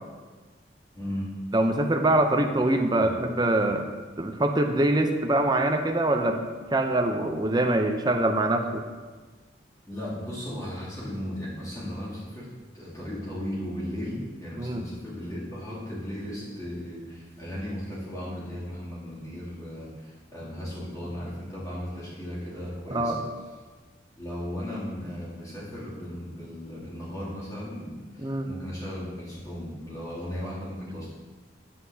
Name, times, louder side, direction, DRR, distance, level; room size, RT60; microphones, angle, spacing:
voice 1, 0.9-1.3 3.0-3.3 9.9-12.5 12.7-23.2 24.2-31.1, equal, 20° left, -9 dB, 2.7 m, -36 dB
voice 2, 1.5-3.9 4.2-6.4 6.7-8.8 14.6-14.8 22.9-23.2 28.2-28.5, right 1 dB, 25° right, 4 dB, 0.6 m, -24 dB
9.4 x 8.5 x 2.8 m, 1.4 s
head